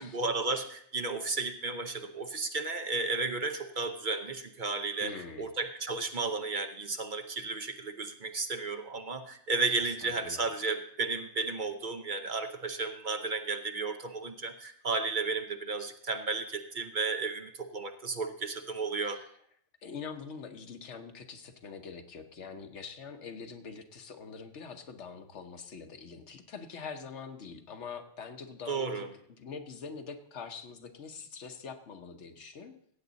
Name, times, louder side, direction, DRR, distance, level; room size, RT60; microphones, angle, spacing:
voice 1, 0.0-19.2 28.7-29.1, right 4 dB, 45° right, 7 dB, 0.8 m, -33 dB
voice 2, 5.0-5.5 9.8-10.4 19.0-19.3 19.8-32.8, left 5 dB, 75° left, 7 dB, 1.2 m, -44 dB
15.5 x 8.3 x 4.0 m, 0.67 s
omnidirectional pair, 1.2 m